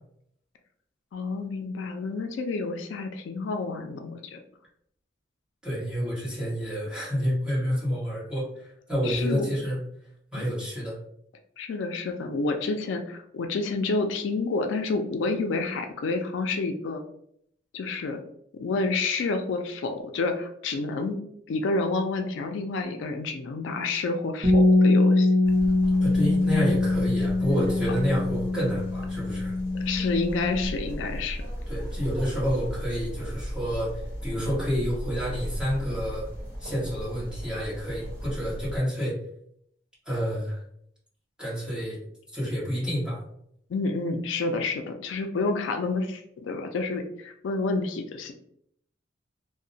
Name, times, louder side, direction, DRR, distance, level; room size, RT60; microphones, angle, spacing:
voice 1, 1.1-4.4 9.0-9.5 10.4-10.5 11.6-17.0 17.7-18.2 18.5-21.2 21.5-25.3 29.9-31.4 43.7-48.3, left 3 dB, 80° left, 5 dB, 0.4 m, -29 dB
voice 2, 5.6-9.8 10.3-11.0 26.0-29.5 31.7-36.3 36.6-39.1 40.0-40.6 41.4-42.0 42.3-43.2, equal, 5° right, -8 dB, 1.2 m, -29 dB
Bass guitar, 24.4-30.7, left 2 dB, 35° right, 0.7 m, -23 dB
sound 1, 25.4-38.8, equal, 25° left, 1.1 m, -37 dB
2.8 x 2.1 x 2.6 m, 0.69 s
head